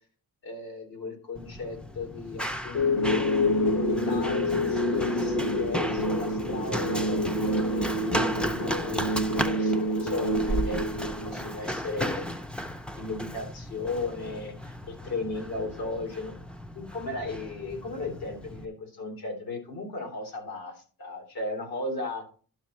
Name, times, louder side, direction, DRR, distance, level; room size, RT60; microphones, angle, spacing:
voice 1, 0.4-3.3 3.7-10.8 11.2-12.3 13.0-16.4 16.7-22.2, left 2 dB, 80° left, 3 dB, 3.1 m, -36 dB
Run, 1.4-18.7, equal, 5° left, 0.4 m, -35 dB
sound 1, 2.8-11.8, left 1 dB, 60° left, 1.6 m, -27 dB
11.0 x 6.4 x 3.0 m, 0.40 s
cardioid pair, 145°, 35 cm